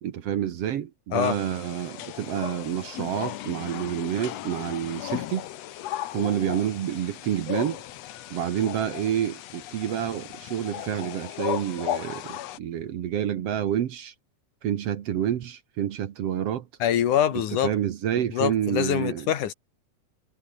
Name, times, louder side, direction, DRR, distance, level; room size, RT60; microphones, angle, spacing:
voice 1, 0.0-5.5 6.1-7.8 8.3-14.1 14.6-16.7 17.6-19.3, right 10 dB, 60° right, 2.0 m, -28 dB
sound 1, 1.2-12.6, left 13 dB, 65° left, 2.0 m, -36 dB
voice 2, 16.8-17.7 18.3-19.5, left 10 dB, 80° left, 3.3 m, -24 dB
omnidirectional pair, 3.5 m